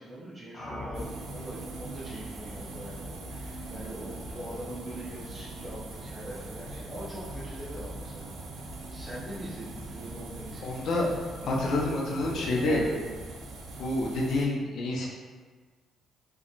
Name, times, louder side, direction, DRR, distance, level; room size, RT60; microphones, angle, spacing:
voice 1, 0.0-10.8 11.3-11.6 12.2-13.2, right 1 dB, 20° right, -9 dB, 0.6 m, -43 dB
sound 1, 0.5-13.4, equal, 25° left, 0.8 m, -46 dB
sound 2, 0.9-14.5, right 2 dB, 90° right, 0.4 m, -42 dB
voice 2, 10.6-11.1 11.4-12.8 13.8-15.1, left 2 dB, 70° left, -2 dB, 0.5 m, -28 dB
2.9 x 2.1 x 2.4 m, 1.4 s
cardioid pair, 90°, 0 cm